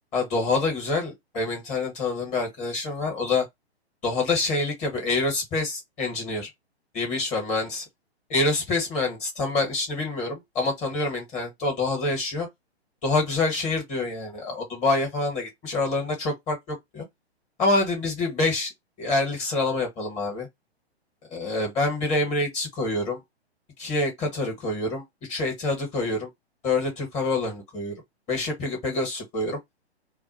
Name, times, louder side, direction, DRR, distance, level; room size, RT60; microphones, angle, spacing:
voice 1, 0.1-3.5 4.0-6.5 6.9-7.8 8.3-12.5 13.0-17.0 17.6-18.7 19.0-20.5 21.3-23.2 23.8-25.0 25.3-26.3 26.6-27.9 28.3-29.6, left 3 dB, 20° left, 1.3 m, -26 dB
2.5 x 2.1 x 3.9 m
hypercardioid pair, 135°, 33 cm